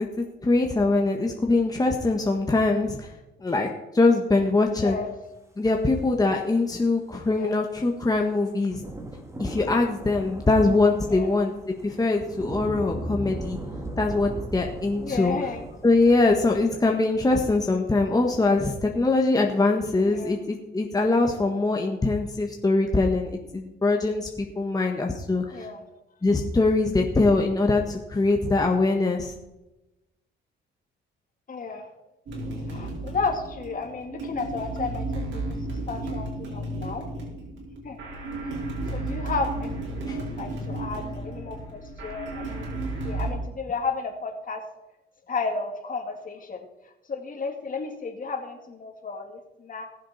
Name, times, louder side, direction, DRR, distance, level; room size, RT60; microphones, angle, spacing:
voice 1, 0.0-3.1 3.4-3.7 3.9-5.0 5.6-8.8 9.4-11.5 11.8-13.6 14.0-15.4 15.8-25.7 26.2-29.3 40.1-40.2, left 3 dB, 20° left, 1 dB, 1.5 m, -23 dB
voice 2, 4.8-5.1 7.3-7.6 11.1-11.3 15.0-15.7 20.1-20.3 25.5-25.8 31.5-31.9 32.7-37.1 37.8-38.0 38.3-38.6 38.9-44.6 45.3-46.7 47.0-49.9, left 4 dB, 45° left, 4 dB, 2.4 m, -33 dB
sound 1, 7.6-16.6, right 1 dB, 15° right, 2.2 m, -37 dB
sound 2, 32.3-43.3, right 2 dB, 70° right, 4.5 m, -33 dB
20.5 x 7.4 x 4.3 m, 0.98 s
cardioid pair, 90°, 20 cm